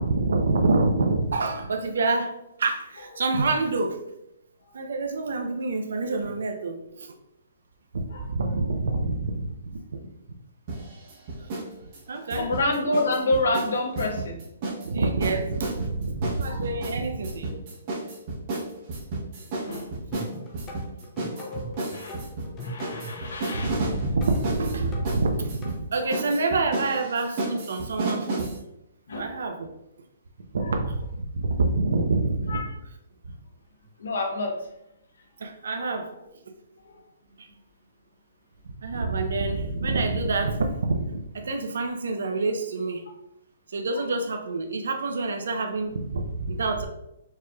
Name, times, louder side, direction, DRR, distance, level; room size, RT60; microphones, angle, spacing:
voice 1, 0.0-4.0 4.7-7.1 7.9-9.8 11.4-11.5 12.1-12.5 14.8-17.5 23.5-28.5 29.2-29.7 30.5-32.6 35.4-36.1 37.4-37.5 38.8-43.1 43.7-46.9, right 3 dB, 75° right, 4 dB, 0.5 m, -27 dB
voice 2, 8.1-8.5 12.4-14.4 16.5-16.8 17.5-17.6 19.6-19.9 21.3-24.1 29.1-29.3 30.6-30.8 32.5-32.7 34.0-34.5 35.8-36.0 36.8-37.0 43.9-44.2, left 2 dB, 85° left, 2 dB, 0.9 m, -29 dB
sound 1, 10.7-11.7 11.9-14.9 15.2-28.6, right 2 dB, 30° right, 0.8 m, -32 dB
sound 2, 20.1-25.7, equal, 15° left, 0.5 m, -40 dB
4.7 x 3.0 x 2.2 m, 0.83 s
hypercardioid pair, 170°, 0 cm